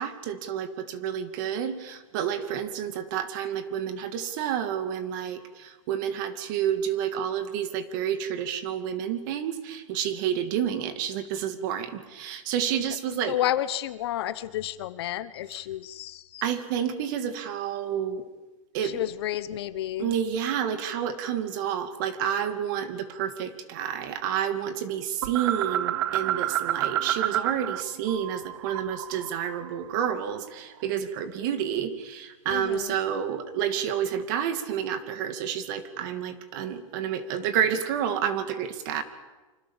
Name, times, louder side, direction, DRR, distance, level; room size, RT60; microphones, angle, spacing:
voice 1, 0.0-13.4 15.5-15.6 16.4-18.2 18.7-19.0 20.0-39.0, right 9 dB, 35° right, 10 dB, 2.4 m, -29 dB
voice 2, 13.3-16.4 18.8-20.1 32.5-32.9, left 12 dB, 50° left, 15 dB, 1.1 m, -31 dB
sound 1, 25.2-27.8 28.1-30.4, right 12 dB, 55° right, 1.1 m, -29 dB
28.0 x 26.0 x 7.4 m, 1.2 s
supercardioid pair, 165°, 17 cm